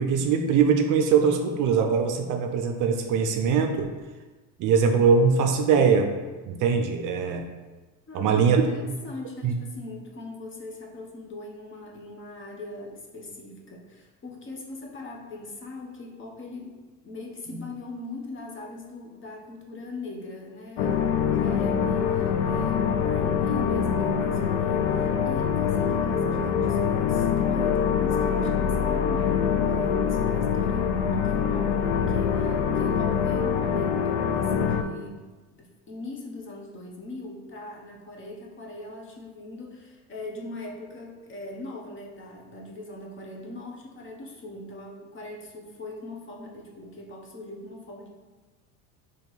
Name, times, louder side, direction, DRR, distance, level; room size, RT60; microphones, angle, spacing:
voice 1, 0.0-3.9 4.6-6.1 6.5-7.4 8.1-8.6 9.4-9.5 17.5-17.6, right 6 dB, 50° right, 5 dB, 0.5 m, -22 dB
voice 2, 8.1-35.2 35.6-48.1, left 2 dB, 30° left, 0 dB, 0.9 m, -40 dB
sound 1, 20.8-34.8, left 7 dB, 60° left, 0.5 m, -24 dB
4.4 x 3.0 x 4.0 m, 1.2 s
supercardioid pair, 100°, 41 cm